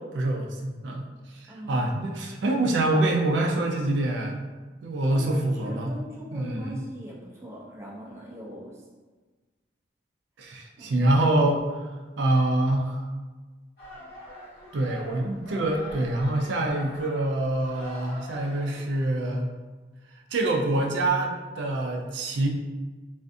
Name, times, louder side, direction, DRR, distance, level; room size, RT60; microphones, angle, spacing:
voice 1, 0.1-4.5 4.8-5.9 6.3-6.8 10.4-11.8 12.2-13.1 14.7-19.5 20.3-22.5, right 2 dB, 85° right, 0 dB, 0.4 m, -25 dB
voice 2, 1.5-2.2 5.1-8.8 10.8-11.1, equal, 15° right, -4 dB, 0.4 m, -41 dB
sound 1, 13.8-18.8, left 1 dB, 55° left, 0.9 m, -43 dB
2.5 x 2.3 x 2.5 m, 1.3 s
head